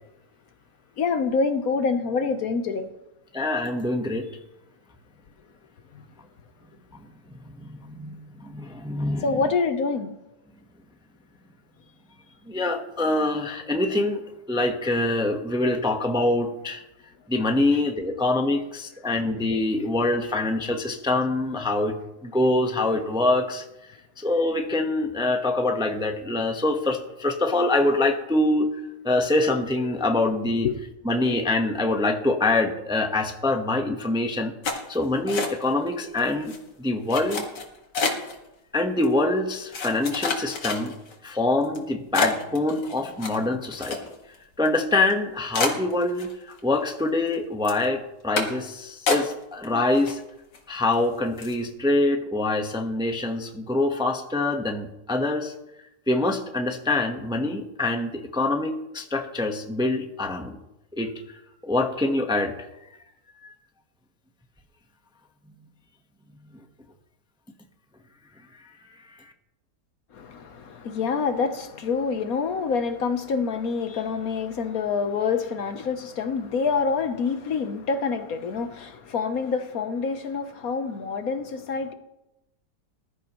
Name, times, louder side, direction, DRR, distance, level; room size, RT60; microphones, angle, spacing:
voice 1, 1.0-2.9 5.9-6.0 9.2-10.1 17.7-17.8 30.6-30.8 70.1-81.9, left 5 dB, 60° left, 8 dB, 1.3 m, -26 dB
voice 2, 3.3-4.3 6.9-7.0 7.4-9.5 12.5-14.2 14.5-16.8 17.3-21.9 22.2-23.6 24.2-28.7 29.0-30.7 31.0-34.5 34.9-37.5 38.7-40.9 41.2-44.0 44.6-50.2 50.7-55.5 56.1-60.6 60.9-61.1 61.6-62.5 68.9-69.2, left 2 dB, 5° right, 4 dB, 0.8 m, -25 dB
sound 1, 34.6-35.9 36.2-36.6 37.1-38.4 39.0-39.1 39.7-41.1 41.6-41.8 42.1-44.4 44.7-44.8 45.1-45.2 45.5-46.6 46.9-47.4 47.7-47.9 48.4-48.7 49.1-49.7 49.9-50.6 50.9-51.1 51.4-51.6, left 4 dB, 85° left, 2.5 m, -28 dB
20.0 x 13.0 x 3.0 m, 0.90 s
omnidirectional pair, 1.8 m